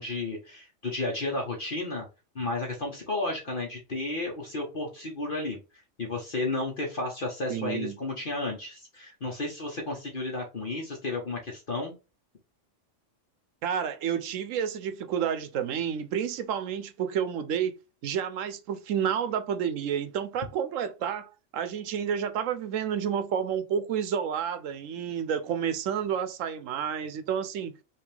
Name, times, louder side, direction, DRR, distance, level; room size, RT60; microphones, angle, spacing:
voice 1, 0.0-2.1 2.3-5.6 6.0-11.9, left 2 dB, 45° left, 1.2 m, -32 dB
voice 2, 7.5-8.0 13.6-17.7 18.0-27.7, right 8 dB, 85° right, 1.1 m, -30 dB
5.6 x 2.8 x 3.4 m
omnidirectional pair, 1.3 m